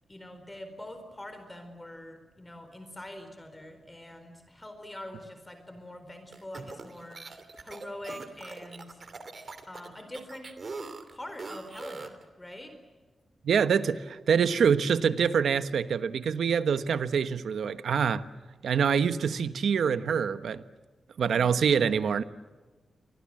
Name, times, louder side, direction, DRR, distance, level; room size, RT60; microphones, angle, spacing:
voice 1, 0.1-9.0 9.7-10.5 11.1-12.7 21.3-21.6, left 1 dB, 15° left, 4.3 m, -44 dB
sound 1, 6.3-12.2, right 4 dB, 45° right, 2.9 m, -42 dB
voice 2, 13.4-18.2 18.6-20.6 21.2-22.2, right 7 dB, 90° right, 1.2 m, -25 dB
30.0 x 24.0 x 7.7 m
wide cardioid pair, 110°, 0 cm